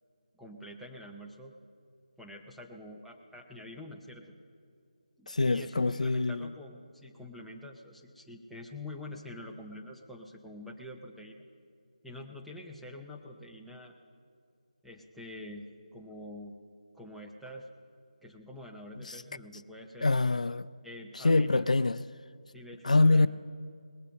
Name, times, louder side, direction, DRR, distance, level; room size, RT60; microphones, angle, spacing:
voice 1, 0.3-1.5 2.2-4.3 5.2-11.5 12.0-13.9 14.8-16.6 16.9-17.7 18.2-20.1 20.8-21.7 22.5-23.3, left 1 dB, ahead, 0.6 m, -46 dB
voice 2, 5.3-6.5 19.0-19.2 20.0-20.7 21.1-22.0 22.8-23.3, left 3 dB, 70° left, 0.4 m, -25 dB
19.5 x 8.2 x 6.6 m
figure-of-eight pair, 160°, 4 cm